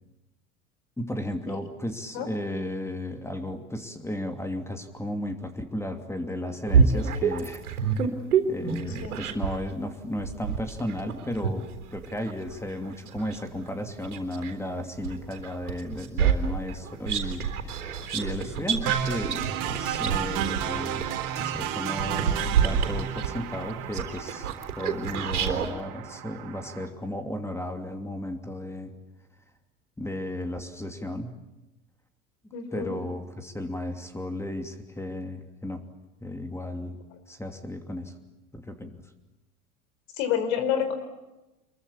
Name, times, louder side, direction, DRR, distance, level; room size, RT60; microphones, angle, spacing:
voice 1, 1.0-8.1 8.5-24.5 24.7-28.9 30.0-31.4 32.7-35.9 36.2-37.0 37.3-38.1 38.5-39.0, left 1 dB, 5° left, 6 dB, 2.8 m, -34 dB
sound 1, 6.7-9.7 10.2-14.6 15.0-25.7, right 6 dB, 80° right, 3.8 m, -27 dB
sound 2, 18.9-26.9, right 10 dB, 45° right, 3.5 m, -33 dB
voice 2, 32.5-33.0 40.1-40.9, left 8 dB, 60° left, 9 dB, 5.0 m, -28 dB
27.0 x 23.0 x 8.5 m, 1.0 s
hypercardioid pair, 80°, 44 cm